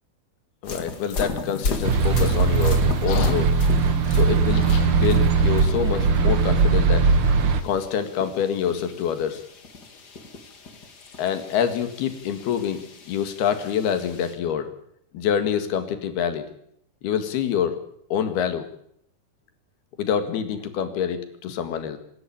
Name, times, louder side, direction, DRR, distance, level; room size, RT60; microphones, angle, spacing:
voice 1, 0.6-3.5 4.1-7.1 7.6-9.4 11.2-12.8 13.1-14.7 15.1-16.5 17.0-17.8 18.1-18.7 20.0-22.0, left 8 dB, 85° left, 9 dB, 3.9 m, -26 dB
sound 1, 0.6-14.3, left 3 dB, 35° left, 1.8 m, -36 dB
sound 2, 1.3-6.3, left 9 dB, 60° left, 2.8 m, -36 dB
sound 3, 1.8-7.6, right 4 dB, 60° right, 1.5 m, -19 dB
26.0 x 12.5 x 8.9 m, 0.69 s
omnidirectional pair, 4.4 m